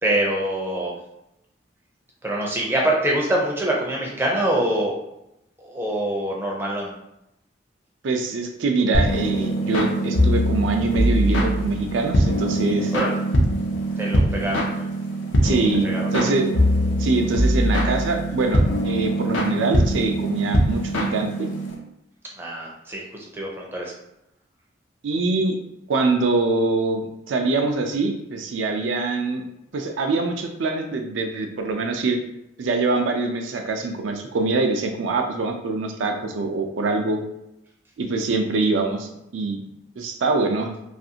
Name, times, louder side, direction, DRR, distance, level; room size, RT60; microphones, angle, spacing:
voice 1, 0.0-0.9 2.2-5.0 5.6-6.9 12.9-13.1 14.0-14.9 15.8-16.3 22.4-23.0 23.3-23.9, right 1 dB, 10° right, -3 dB, 0.4 m, -24 dB
voice 2, 8.0-12.9 15.4-16.5 17.0-21.5 25.0-25.6 25.9-29.4 29.7-32.2 32.6-37.2 38.0-39.6 40.0-40.7, right 3 dB, 85° right, 4 dB, 0.4 m, -24 dB
sound 1, 8.9-21.7, equal, 85° left, 0.5 m, -22 dB
2.5 x 2.4 x 2.7 m, 0.85 s
head